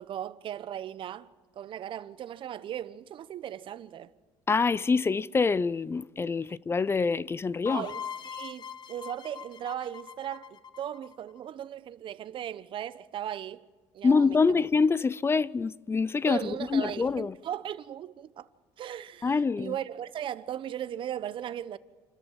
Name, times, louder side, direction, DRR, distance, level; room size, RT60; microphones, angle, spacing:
voice 1, 0.0-4.1 7.7-13.6 13.9-14.7 16.3-18.5 18.8-21.8, right 10 dB, 50° right, 1.0 m, -37 dB
voice 2, 4.5-7.9 14.0-17.3 19.2-19.7, left 4 dB, 20° left, 0.6 m, -25 dB
sound 1, 7.7-11.4, left 8 dB, 40° left, 1.1 m, -41 dB
28.0 x 13.5 x 7.4 m
supercardioid pair, 100°, 11 cm